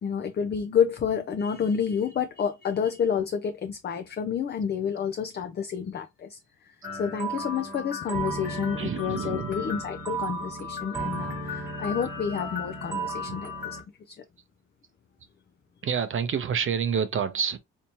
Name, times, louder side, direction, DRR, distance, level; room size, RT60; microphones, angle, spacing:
voice 1, 0.0-13.8 14.1-14.2, left 7 dB, 35° left, 0.5 m, -29 dB
sound 1, 6.8-13.8, right 1 dB, 10° right, 1.3 m, -34 dB
voice 2, 8.8-9.5 11.1-11.4 13.3-13.4 15.8-17.6, right 7 dB, 45° right, 0.5 m, -28 dB
3.4 x 2.8 x 2.9 m
cardioid pair, 90°, 30 cm